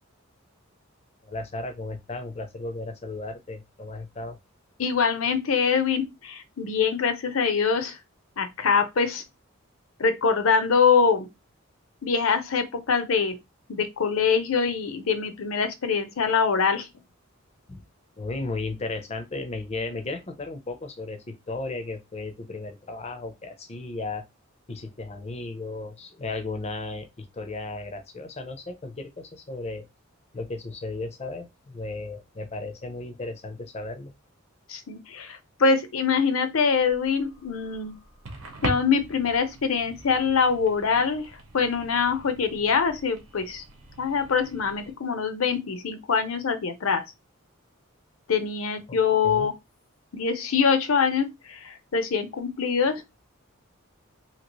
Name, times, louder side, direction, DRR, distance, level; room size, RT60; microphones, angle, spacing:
voice 1, 1.2-4.4 17.7-17.8 18.2-24.2 24.7-29.9 30.3-34.1 48.9-49.0 49.2-49.5, left 3 dB, 30° left, 0.5 m, -35 dB
voice 2, 4.8-8.0 8.4-9.2 10.0-11.3 12.0-13.4 13.7-16.9 34.7-38.0 38.6-41.3 41.5-43.6 44.0-47.0 48.3-49.5 50.1-53.0, left 5 dB, 70° left, 0.6 m, -24 dB
sound 1, 36.7-44.9, right 2 dB, 75° right, 0.9 m, -41 dB
2.9 x 2.8 x 2.9 m
head